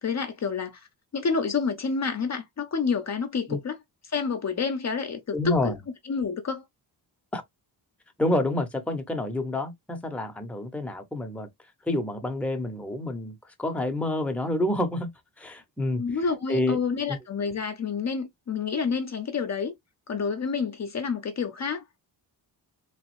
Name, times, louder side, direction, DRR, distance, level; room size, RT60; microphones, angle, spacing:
voice 1, 0.0-0.9 1.1-3.8 4.0-5.7 6.1-6.6 15.9-19.7 20.1-21.8, left 5 dB, 40° left, 0.7 m, -28 dB
voice 2, 5.3-5.8 7.3-7.4 8.2-11.5 11.8-15.1 15.4-16.1 16.5-16.8 17.1-17.2, left 1 dB, 5° left, 0.8 m, -28 dB
3.4 x 3.1 x 3.1 m
wide cardioid pair, 140°, 41 cm